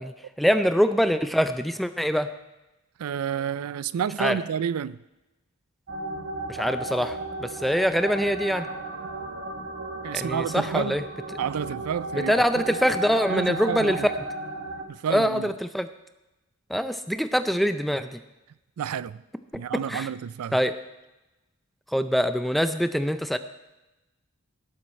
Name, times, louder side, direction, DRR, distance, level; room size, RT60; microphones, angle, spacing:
voice 1, 0.0-2.3 4.2-4.4 6.5-8.7 10.1-11.0 12.2-14.1 15.1-15.9 16.7-18.2 19.9-20.1 20.5-20.7 21.9-23.4, equal, ahead, 0.4 m, -24 dB
voice 2, 3.0-5.0 10.0-11.0 11.4-12.6 13.3-14.1 14.9-15.5 18.8-19.2 19.5-20.6, right 8 dB, 80° right, 0.4 m, -30 dB
sound 1, 5.9-14.8, right 2 dB, 55° right, 1.3 m, -35 dB
18.0 x 7.7 x 4.3 m
head